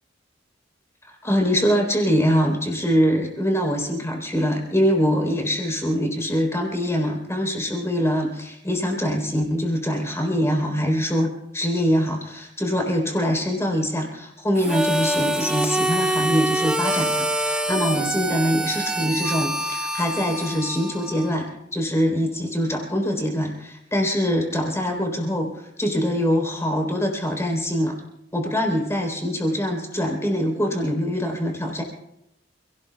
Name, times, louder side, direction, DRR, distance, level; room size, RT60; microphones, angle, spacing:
voice 1, 1.2-21.5 21.7-25.5 25.8-28.0 28.3-31.8, equal, 15° left, 1 dB, 3.8 m, -23 dB
Harmonica, 14.6-21.5, right 1 dB, 5° right, 0.8 m, -25 dB
28.5 x 18.0 x 2.4 m, 0.83 s
head